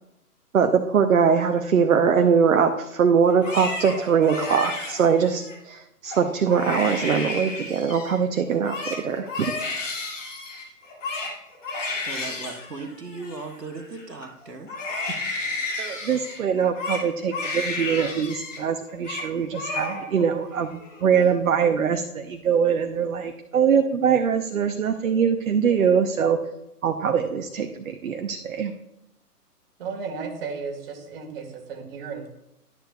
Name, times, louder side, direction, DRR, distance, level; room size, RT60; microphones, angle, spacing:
voice 1, 0.5-9.5 15.8-26.4 26.8-28.7, right 7 dB, 60° right, 5 dB, 0.8 m, -22 dB
Crying sobbing, 3.3-5.6 6.1-6.2 6.5-8.2 8.5-14.2 14.7-18.6 18.9-19.3 19.5-20.3 20.6-21.2, left 3 dB, 50° left, 2.5 m, -32 dB
voice 2, 12.1-15.2, right 3 dB, 90° right, 5 dB, 1.4 m, -37 dB
voice 3, 29.8-32.3, right 5 dB, 40° right, 3 dB, 1.6 m, -34 dB
11.0 x 9.3 x 2.3 m, 0.88 s
figure-of-eight pair, 135°, 47 cm